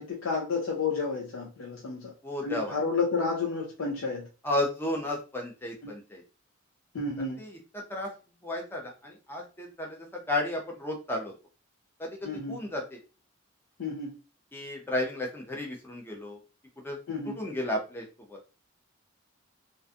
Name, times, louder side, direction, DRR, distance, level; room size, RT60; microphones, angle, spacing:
voice 1, 0.0-2.1 2.4-4.3 5.8-5.9 6.9-7.4 12.2-12.6 13.8-14.1 17.1-17.3, left 4 dB, 80° left, 0.5 m, -31 dB
voice 2, 2.2-2.8 4.4-6.2 7.4-8.1 8.4-11.3 12.0-13.0 14.5-16.4 16.8-17.0 17.2-18.4, left 1 dB, 10° left, 0.5 m, -33 dB
2.5 x 2.2 x 2.5 m
head